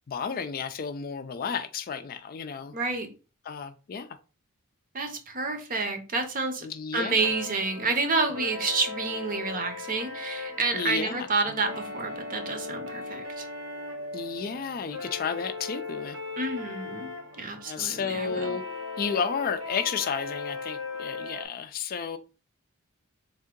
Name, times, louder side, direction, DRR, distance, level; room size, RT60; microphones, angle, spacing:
voice 1, 0.1-2.7 3.5-4.1 6.6-7.2 10.7-11.3 14.1-16.2 17.7-18.6 19.0-22.2, left 6 dB, 45° left, 0.4 m, -32 dB
voice 2, 2.7-3.1 4.9-6.7 6.9-13.5 16.4-18.6, right 3 dB, 40° right, 0.7 m, -29 dB
sound 1, 7.2-21.4, left 3 dB, 80° right, 1.5 m, -38 dB
3.5 x 2.7 x 3.6 m
head